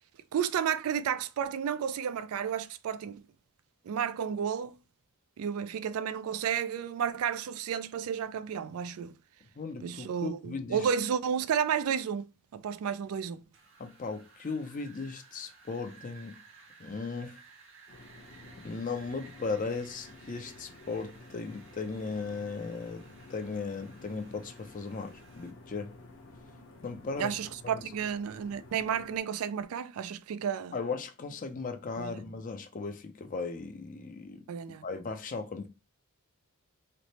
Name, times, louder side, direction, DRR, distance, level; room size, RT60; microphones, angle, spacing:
voice 1, 0.3-3.2 3.8-4.8 5.4-9.2 9.8-13.4 27.2-30.8 32.0-32.2 34.5-34.8, right 8 dB, 75° right, 0.3 m, -32 dB
voice 2, 9.6-10.8 13.8-16.4 16.8-17.4 18.6-25.9 26.8-27.4 27.6-27.8 30.7-34.4 34.8-35.7, left 4 dB, 35° left, 0.4 m, -37 dB
Wind, 13.5-25.5, right 5 dB, 60° right, 0.8 m, -56 dB
sound 1, 17.9-29.2, left 2 dB, 60° left, 0.9 m, -52 dB
3.2 x 2.0 x 4.0 m
head